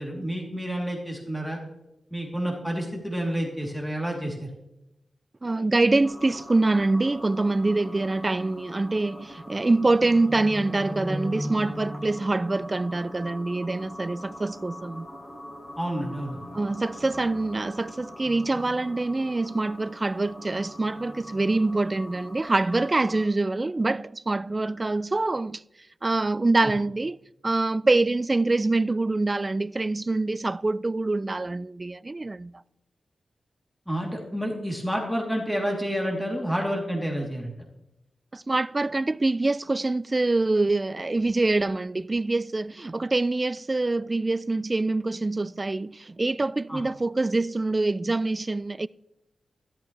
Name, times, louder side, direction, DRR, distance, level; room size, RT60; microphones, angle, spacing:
voice 1, 0.0-1.6 2.1-4.5 15.8-16.4 33.9-37.5 46.7-46.8, equal, ahead, 3.1 m, -29 dB
voice 2, 5.4-15.1 16.5-25.6 26.0-27.2 27.4-32.5 38.3-48.9, right 2 dB, 30° right, 0.3 m, -25 dB
sound 1, 6.0-23.3, equal, 35° left, 3.5 m, -40 dB
13.5 x 12.0 x 3.3 m
cardioid pair, 60°, 0 cm